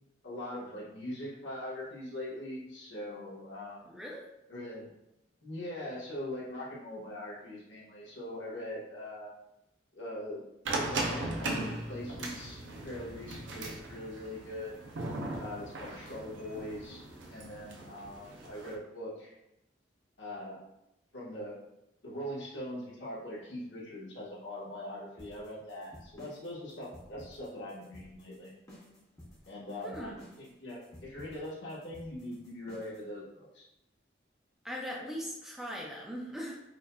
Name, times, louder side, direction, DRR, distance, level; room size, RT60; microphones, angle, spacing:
voice 1, 0.2-3.9 4.5-4.9 5.4-9.3 9.9-10.4 10.7-14.7 15.4-19.3 20.2-20.6 21.1-21.5 22.0-28.5 29.5-33.6, left 1 dB, 80° left, -6 dB, 1.3 m, -42 dB
voice 2, 3.8-4.3 29.8-30.2 34.6-36.6, equal, ahead, -3 dB, 0.4 m, -40 dB
sound 1, 10.6-18.7, right 2 dB, 85° right, 0.5 m, -38 dB
sound 2, 25.2-33.1, left 1 dB, 15° left, 0.8 m, -53 dB
4.8 x 2.6 x 2.3 m, 0.87 s
head